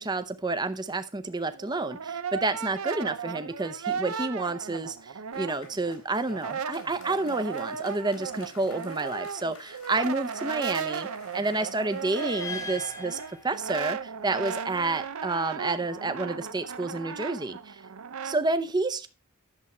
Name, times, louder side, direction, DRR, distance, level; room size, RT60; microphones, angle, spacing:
voice 1, 0.0-11.1 11.3-17.8 18.2-19.1, right 2 dB, 20° right, 0.7 m, -30 dB
Brass instrument, 1.5-6.0 6.2-18.4, right 6 dB, 75° right, 0.6 m, -36 dB
Applause, 5.3-14.7, left 3 dB, 85° left, 3.3 m, -52 dB
sound 1, 12.1-14.2, left 2 dB, 15° left, 1.2 m, -40 dB
11.0 x 7.2 x 4.3 m
head